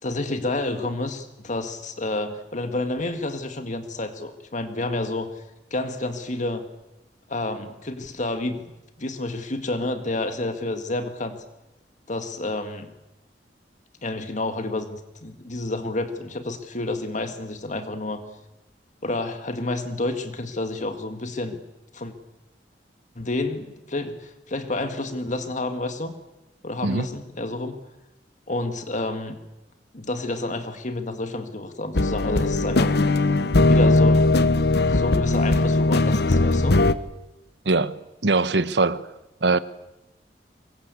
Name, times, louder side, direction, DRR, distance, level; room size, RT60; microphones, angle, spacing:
voice 1, 0.0-5.4 5.7-6.6 7.3-8.6 9.0-11.4 12.1-12.9 14.0-18.2 19.0-21.6 21.9-22.1 23.2-26.1 26.6-27.8 28.5-29.4 29.9-33.2 33.6-34.4 34.9-36.8, left 2 dB, 45° left, 8 dB, 2.0 m, -29 dB
sound 1, 31.9-36.9, left 2 dB, 65° left, 1.2 m, -19 dB
voice 2, 37.6-39.1 39.4-39.6, right 3 dB, 75° right, 14 dB, 1.2 m, -22 dB
24.5 x 23.0 x 8.4 m, 0.95 s
head